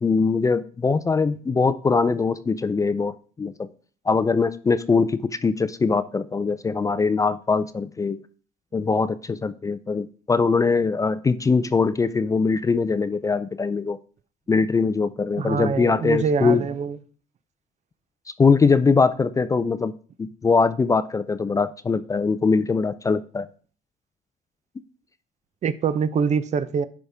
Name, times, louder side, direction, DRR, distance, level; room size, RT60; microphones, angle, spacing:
voice 1, 0.0-3.5 4.1-8.2 8.7-14.0 14.5-16.6 18.4-19.9 20.2-23.5, left 4 dB, 20° left, 0.4 m, -22 dB
voice 2, 15.4-17.0 25.6-26.8, right 6 dB, 45° right, 0.5 m, -24 dB
10.5 x 5.1 x 3.5 m
cardioid pair, 110°, 17 cm